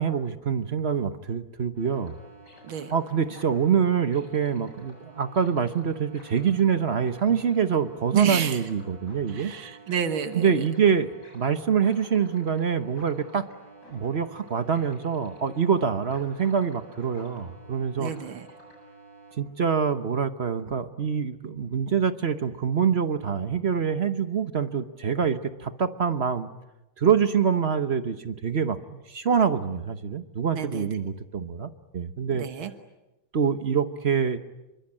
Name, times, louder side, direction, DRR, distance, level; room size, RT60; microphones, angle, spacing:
voice 1, 0.0-2.1 2.9-9.5 10.3-13.5 13.9-18.1 19.4-26.5 27.0-28.8 29.1-32.4 33.3-34.4, right 7 dB, 40° right, 10 dB, 1.0 m, -25 dB
sound 1, 1.7-19.3, right 1 dB, 55° left, 8.7 m, -50 dB
voice 2, 8.1-8.6 9.3-10.6 18.0-18.5 30.5-30.9 32.4-32.7, right 8 dB, 85° right, 8 dB, 2.2 m, -30 dB
27.0 x 24.0 x 8.8 m, 1.0 s
omnidirectional pair, 2.2 m